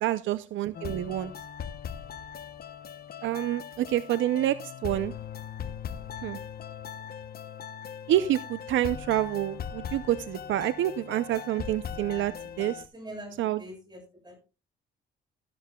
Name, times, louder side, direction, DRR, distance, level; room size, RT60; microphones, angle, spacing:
voice 1, 0.0-1.3 3.2-5.1 6.2-6.4 8.1-12.3 12.6-12.8 13.4-13.6, right 13 dB, 75° right, 14 dB, 0.6 m, -28 dB
sound 1, 0.7-12.9, left 8 dB, 50° left, 0.8 m, -40 dB
voice 2, 12.9-14.4, right 1 dB, 20° right, 3 dB, 7.5 m, -44 dB
13.0 x 12.5 x 2.3 m, 0.30 s
cardioid pair, 90°, 20 cm